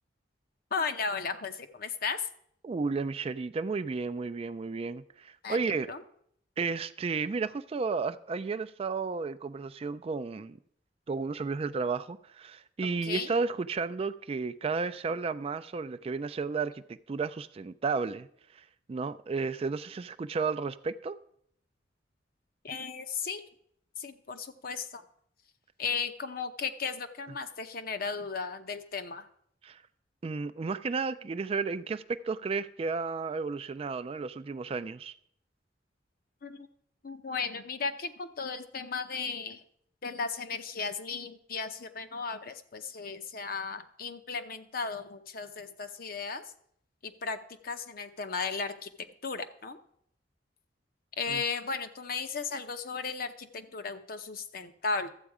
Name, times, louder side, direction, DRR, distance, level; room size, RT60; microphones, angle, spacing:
voice 1, 0.7-2.3 5.4-5.6 5.9-6.0 13.0-13.4 22.6-23.4 24.0-25.0 25.8-29.3 36.4-36.7 37.0-39.6 40.0-46.4 47.0-47.4 47.6-49.8 51.2-55.1, left 5 dB, 50° left, 0.8 m, -35 dB
voice 2, 2.6-5.9 6.6-10.6 11.1-18.3 18.9-21.2 29.6-29.8 30.2-35.1 51.3-51.4, right 4 dB, 30° right, 0.3 m, -33 dB
13.0 x 8.0 x 4.8 m
head